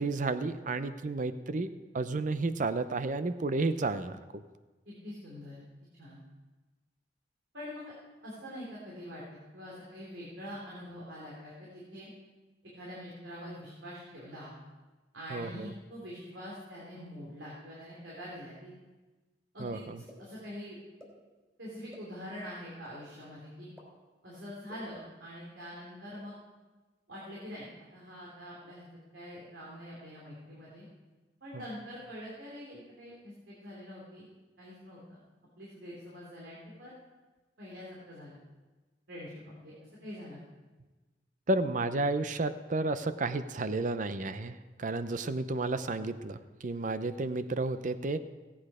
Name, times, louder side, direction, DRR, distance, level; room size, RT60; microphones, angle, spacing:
voice 1, 0.0-4.4 15.3-15.7 19.6-20.0 41.5-48.2, right 2 dB, 45° right, 12 dB, 0.6 m, -32 dB
voice 2, 4.8-5.6 6.0-6.2 7.5-7.9 8.2-9.2 9.5-12.1 12.7-14.5 15.1-18.7 19.5-19.8 20.2-20.8 21.6-23.7 24.2-26.3 27.1-27.7 27.9-28.8 29.1-30.8 31.4-34.3 34.6-35.2 35.6-36.9 37.6-38.4 39.1-39.3 39.6-39.7 40.0-40.4, equal, 80° right, -5 dB, 3.1 m, -44 dB
sound 1, 20.1-20.2 21.0-21.1 21.9-22.0 22.8-22.9 23.8-23.9 24.7-24.8, left 1 dB, 15° right, 3.3 m, -50 dB
17.0 x 8.6 x 4.9 m, 1.2 s
head